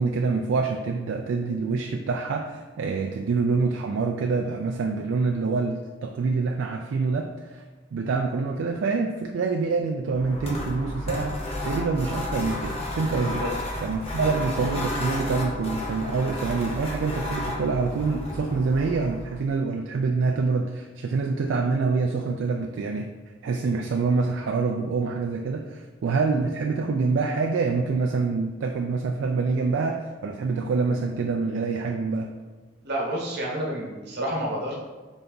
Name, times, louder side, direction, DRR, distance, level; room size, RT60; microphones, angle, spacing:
voice 1, 0.0-7.6 7.9-13.4 13.8-23.1 23.4-32.3, right 4 dB, 80° right, 3 dB, 0.3 m, -26 dB
sound 1, 10.1-19.5, left 1 dB, 35° left, 0.9 m, -32 dB
voice 2, 32.8-34.7, right 1 dB, 60° right, -2 dB, 1.2 m, -29 dB
4.0 x 3.4 x 3.8 m, 1.3 s
head